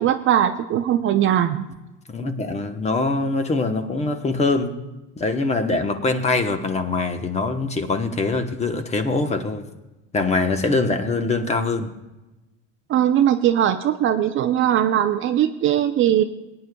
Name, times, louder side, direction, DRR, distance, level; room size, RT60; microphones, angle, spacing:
voice 1, 0.0-1.7 12.9-16.2, right 11 dB, 35° right, 9 dB, 0.6 m, -20 dB
voice 2, 2.1-4.7 5.2-9.6 10.1-11.9, left 3 dB, 20° left, 7 dB, 1.0 m, -23 dB
20.0 x 9.8 x 2.3 m, 1.0 s
supercardioid pair, 135°, 35 cm